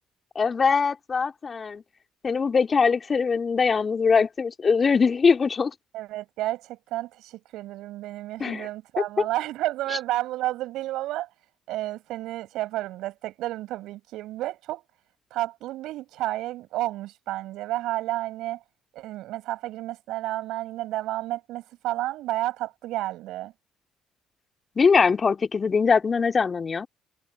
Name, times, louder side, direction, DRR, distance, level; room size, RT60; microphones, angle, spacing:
voice 1, 0.3-1.8 2.2-5.7 8.4-8.7 9.2-9.3 24.8-26.9, left 5 dB, 40° left, 3.2 m, -22 dB
voice 2, 5.9-11.3 11.7-14.8 15.3-18.6 18.9-23.5, right 16 dB, 70° right, 5.4 m, -31 dB
hypercardioid pair, 55°, 0 cm